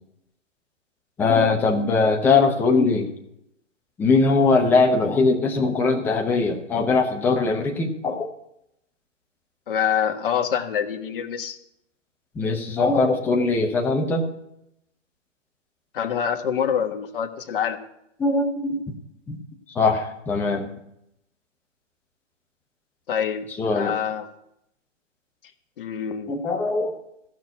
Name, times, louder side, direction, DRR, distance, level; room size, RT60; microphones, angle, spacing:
voice 1, 1.2-3.1 4.0-8.3 12.4-14.3 18.2-18.8 19.3-19.4 19.8-20.7 23.6-23.9 26.3-26.9, left 3 dB, 5° left, 2 dB, 0.8 m, -21 dB
voice 2, 9.7-11.6 15.9-17.8 23.1-23.5 23.7-24.3 25.8-26.3, left 8 dB, 45° left, 7 dB, 1.4 m, -25 dB
15.0 x 6.3 x 9.5 m, 0.79 s
figure-of-eight pair, 140°, 38 cm